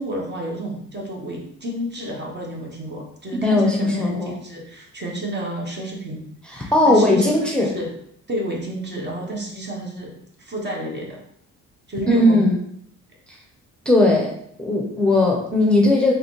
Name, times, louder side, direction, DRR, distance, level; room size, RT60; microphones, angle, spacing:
voice 1, 0.0-7.4 7.6-7.9 8.3-11.2 11.9-12.4, right 1 dB, 35° right, -1 dB, 1.1 m, -30 dB
voice 2, 3.4-4.3 6.5-7.7 12.1-12.5 13.8-14.3 14.6-16.1, left 1 dB, 5° left, -1 dB, 0.8 m, -18 dB
3.9 x 3.2 x 3.2 m, 0.70 s
cardioid pair, 90°, 30 cm